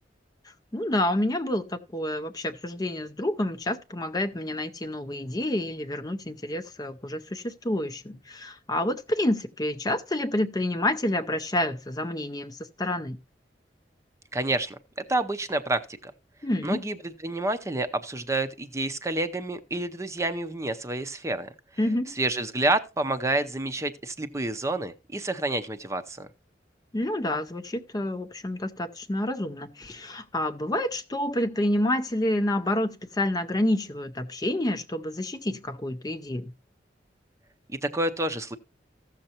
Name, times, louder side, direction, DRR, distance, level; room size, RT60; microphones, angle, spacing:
voice 1, 0.4-13.2 16.4-16.8 21.8-22.2 26.9-36.5, left 1 dB, 20° left, 0.6 m, -28 dB
voice 2, 14.3-16.1 16.6-17.0 17.2-21.5 22.2-26.3 37.8-38.6, right 2 dB, 15° right, 0.6 m, -29 dB
15.0 x 6.6 x 2.9 m
head